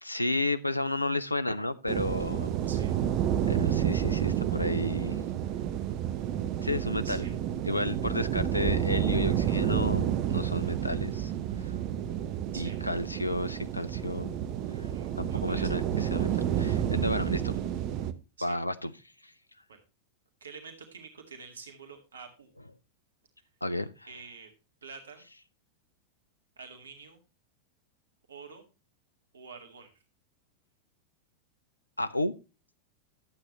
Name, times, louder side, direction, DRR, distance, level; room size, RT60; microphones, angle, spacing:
voice 1, 0.0-2.5 3.4-5.2 6.6-7.2 7.6-11.3 11.6-11.7 12.5-14.3 14.8-14.9 15.2-17.6 18.4-18.9 19.2-19.3 23.6-24.1 32.0-32.3, left 1 dB, 85° left, 0.5 m, -32 dB
sound 1, 1.9-18.1, right 10 dB, 40° right, 0.9 m, -30 dB
voice 2, 2.6-2.9 7.0-7.3 12.5-12.8 14.9-15.8 18.4-18.6 19.7-19.8 20.4-22.5 24.1-24.5 24.8-25.2 26.6-27.2 28.3-28.6 29.3-29.9, right 5 dB, 70° right, 1.8 m, -47 dB
11.5 x 8.2 x 3.0 m
figure-of-eight pair, 90°, 0 cm